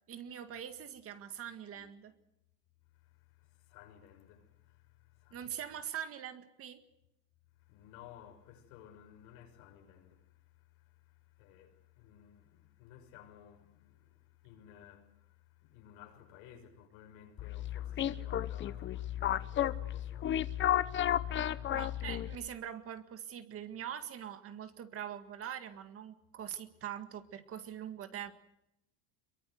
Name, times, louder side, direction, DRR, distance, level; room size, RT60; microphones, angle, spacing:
voice 1, 0.1-2.1 5.3-6.8 21.7-28.3, right 9 dB, 35° right, 1.9 m, -43 dB
voice 2, 3.0-5.7 7.7-10.3 10.5-20.8 21.2-21.7, left 10 dB, 80° left, 6.2 m, -57 dB
sound 1, 17.4-22.5, left 11 dB, 30° left, 0.9 m, -33 dB
25.5 x 23.0 x 8.0 m
cardioid pair, 155°, 40 cm